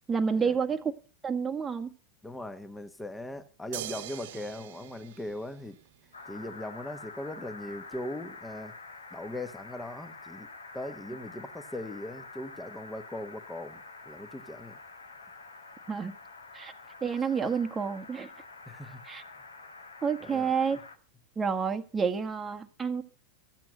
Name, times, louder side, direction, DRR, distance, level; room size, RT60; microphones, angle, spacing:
voice 1, 0.1-0.9 1.2-1.9 15.9-16.2 16.5-16.7 17.0-18.3 19.0-19.2 20.0-20.8 21.4-23.0, right 6 dB, 20° right, 1.3 m, -29 dB
voice 2, 2.2-5.8 6.3-8.7 9.1-10.5 10.7-13.8 14.0-14.8 18.7-19.0 19.3-19.4 20.2-20.5, left 1 dB, 10° left, 1.3 m, -39 dB
sound 1, 3.7-6.2 7.9-8.0, right 13 dB, 60° right, 0.9 m, -43 dB
sound 2, 6.1-21.0, left 3 dB, 80° left, 1.5 m, -47 dB
14.5 x 9.0 x 6.4 m
figure-of-eight pair, 90°, 0 cm